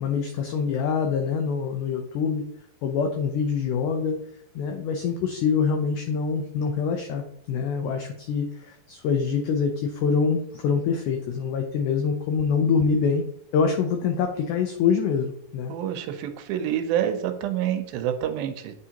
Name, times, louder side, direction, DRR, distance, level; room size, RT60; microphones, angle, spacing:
voice 1, 0.0-2.4 2.8-4.2 4.6-13.2 13.5-15.7, left 6 dB, 85° left, 4 dB, 1.8 m, -25 dB
voice 2, 15.7-18.7, right 10 dB, 80° right, 7 dB, 2.4 m, -27 dB
9.4 x 3.6 x 2.9 m, 0.73 s
omnidirectional pair, 4.3 m